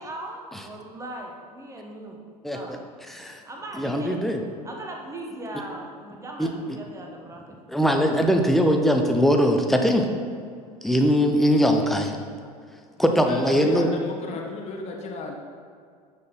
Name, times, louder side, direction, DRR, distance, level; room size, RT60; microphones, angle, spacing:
voice 1, 0.0-2.2 2.5-2.8 3.4-4.2 4.6-7.6, right 1 dB, 15° right, 1 dB, 1.1 m, -39 dB
voice 2, 3.8-4.4 6.4-6.5 7.7-10.1 10.8-12.1 13.0-13.9, equal, ahead, 3 dB, 0.6 m, -21 dB
voice 3, 13.0-15.3, left 3 dB, 30° left, 1 dB, 0.9 m, -34 dB
9.5 x 4.3 x 4.0 m, 2.2 s
figure-of-eight pair, 75°, 20 cm